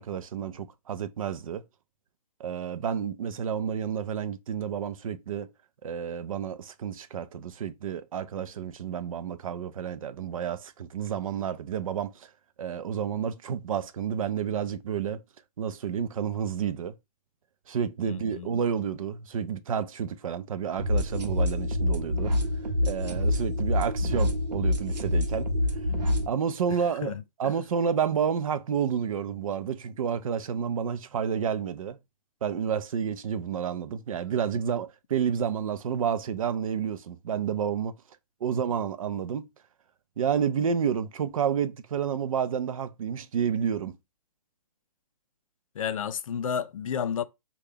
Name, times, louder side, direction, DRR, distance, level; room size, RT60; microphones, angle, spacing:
voice 1, 0.0-1.6 2.4-5.5 5.8-12.3 12.6-15.2 15.6-16.9 17.7-22.3 22.8-25.5 26.3-32.0 32.4-37.9 38.4-39.4 40.2-44.0, right 7 dB, 55° right, 0.5 m, -30 dB
voice 2, 18.1-18.5 27.0-27.5 45.8-47.2, left 8 dB, 55° left, 0.4 m, -31 dB
sound 1, 20.8-26.3, left 1 dB, 80° right, 0.8 m, -26 dB
3.2 x 2.3 x 3.5 m
hypercardioid pair, 135°, 21 cm